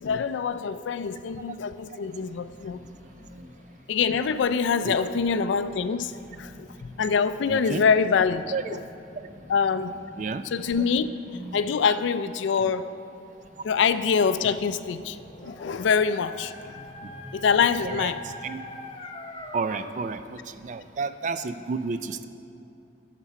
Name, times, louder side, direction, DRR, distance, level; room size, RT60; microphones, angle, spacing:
voice 1, 0.0-2.8 3.9-6.1 6.4-8.4 9.5-9.9 10.5-11.1 11.5-12.9 13.6-16.5 17.3-18.2, left 6 dB, 75° left, 13 dB, 0.3 m, -24 dB
sound 1, 2.0-12.2 12.6-18.4, equal, 5° left, 1.6 m, -48 dB
voice 2, 7.5-7.8 8.5-8.8 9.2-9.3 10.2-10.4 11.7-11.8 17.8-18.6 19.5-22.3, right 4 dB, 40° right, 11 dB, 0.3 m, -31 dB
Dog, 15.1-20.2, left 2 dB, 30° left, 0.6 m, -42 dB
9.7 x 6.0 x 5.7 m, 2.8 s
head